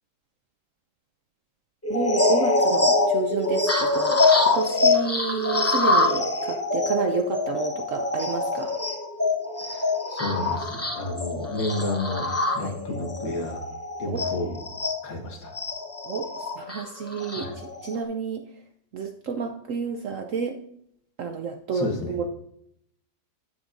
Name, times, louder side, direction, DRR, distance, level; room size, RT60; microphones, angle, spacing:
sound 1, 1.8-15.0 15.5-18.0, left 3 dB, 25° left, 0.3 m, -24 dB
voice 1, 1.9-8.8 12.6-12.7 14.1-14.2 16.0-18.5 18.9-20.6 21.2-22.3, right 5 dB, 70° right, 6 dB, 0.7 m, -30 dB
voice 2, 9.6-12.3 12.5-13.7 14.0-14.6 15.0-15.5 17.4-17.5 21.7-22.3, left 2 dB, 80° left, 2 dB, 2.2 m, -31 dB
9.8 x 9.4 x 2.5 m, 0.72 s
omnidirectional pair, 2.0 m